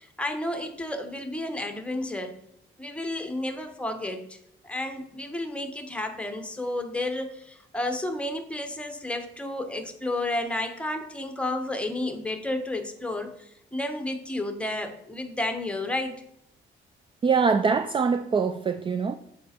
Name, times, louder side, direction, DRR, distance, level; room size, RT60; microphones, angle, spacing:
voice 1, 0.0-2.3 2.8-4.4 4.6-16.2, left 1 dB, 5° left, 1.0 m, -31 dB
voice 2, 17.2-19.1, right 5 dB, 25° right, 0.3 m, -23 dB
7.4 x 5.0 x 4.3 m
cardioid pair, 90°, 20 cm